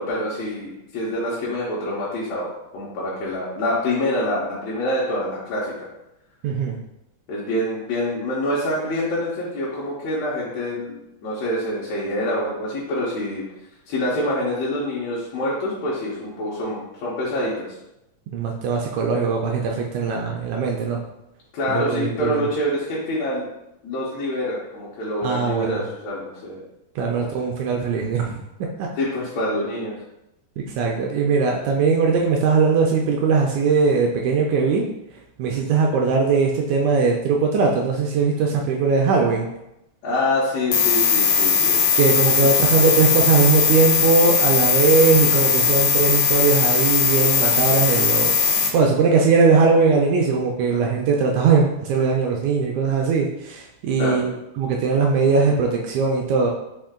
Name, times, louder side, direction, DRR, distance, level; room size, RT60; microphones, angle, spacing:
voice 1, 0.0-5.9 7.3-11.0 11.2-13.4 13.9-17.7 21.5-23.5 23.8-26.6 27.1-27.3 28.9-30.0 40.0-41.8 42.4-42.5 54.0-54.2, left 1 dB, 70° left, -8 dB, 1.9 m, -26 dB
voice 2, 6.4-6.8 18.3-21.0 21.7-22.4 25.2-25.8 26.9-28.4 28.8-28.9 30.6-34.9 35.4-39.5 41.9-56.5, right 5 dB, 80° right, 0 dB, 1.7 m, -20 dB
sound 1, 40.7-48.7, left 6 dB, 90° left, 2.3 m, -19 dB
5.3 x 2.5 x 3.6 m, 0.88 s
omnidirectional pair, 3.7 m